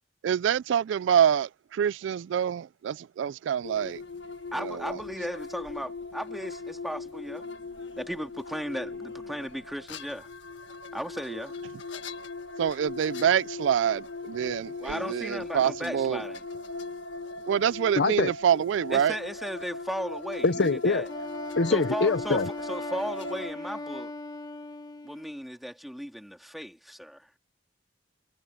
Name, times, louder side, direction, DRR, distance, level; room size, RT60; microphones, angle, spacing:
voice 1, 0.2-4.0 4.6-5.0 12.6-16.2 17.5-19.2, right 8 dB, 85° right, 0.3 m, -26 dB
sound 1, 3.6-23.5, left 3 dB, 85° left, 1.7 m, -39 dB
voice 2, 4.5-7.4 8.0-10.3 10.9-11.5 14.8-16.4 18.9-21.1 21.7-24.1 25.0-27.3, equal, ahead, 2.7 m, -36 dB
voice 3, 18.0-18.3 20.4-21.0 21.6-22.5, left 3 dB, 65° left, 0.8 m, -24 dB
Wind instrument woodwind instrument, 21.1-25.4, left 2 dB, 20° left, 1.2 m, -39 dB
head